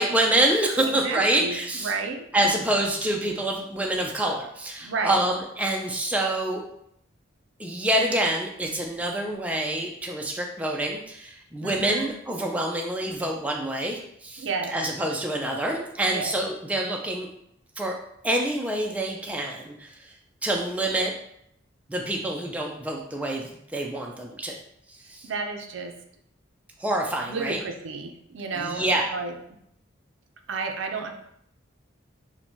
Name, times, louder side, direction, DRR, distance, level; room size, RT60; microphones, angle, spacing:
voice 1, 0.0-1.9 2.3-6.6 7.6-14.5 14.7-17.3 17.8-17.9 18.2-20.1 20.4-21.1 21.9-24.6 24.9-25.3 26.8-27.6 28.5-29.0, right 1 dB, 5° right, 0 dB, 0.3 m, -26 dB
voice 2, 0.8-2.2 4.8-5.2 11.6-12.1 14.4-14.8 16.0-16.4 25.2-26.0 27.3-29.3 30.5-31.1, right 4 dB, 75° right, 5 dB, 0.4 m, -31 dB
4.3 x 2.1 x 2.8 m, 0.71 s
head